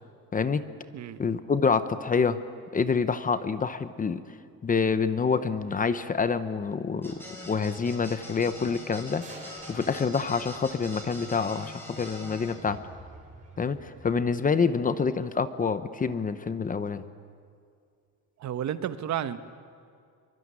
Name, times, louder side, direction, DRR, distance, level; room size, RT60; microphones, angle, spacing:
voice 1, 0.3-0.6 1.2-2.4 2.7-4.2 4.6-7.1 7.5-9.2 9.7-12.8 13.6-17.0, left 5 dB, 25° left, 12 dB, 0.9 m, -27 dB
sound 1, 7.0-12.5, left 1 dB, 5° left, 6.8 m, -43 dB
sound 2, 9.2-11.1 12.5-14.1, right 2 dB, 20° right, 5.2 m, -49 dB
voice 2, 18.4-19.4, right 10 dB, 50° right, 11 dB, 1.3 m, -31 dB
24.5 x 23.5 x 9.7 m, 2.3 s
cardioid pair, 160°, 35 cm